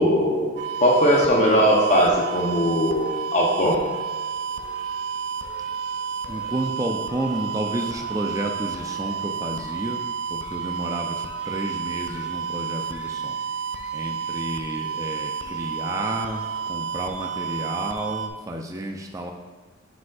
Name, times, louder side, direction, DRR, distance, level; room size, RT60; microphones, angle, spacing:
voice 1, 0.0-3.9, equal, 35° left, -2 dB, 0.7 m, -20 dB
sound 1, 0.6-18.3, right 6 dB, 65° right, 0.5 m, -31 dB
voice 2, 6.3-10.0 10.3-13.4 13.9-19.3, right 1 dB, 15° right, 2 dB, 0.4 m, -31 dB
9.5 x 5.1 x 2.3 m, 1.4 s
head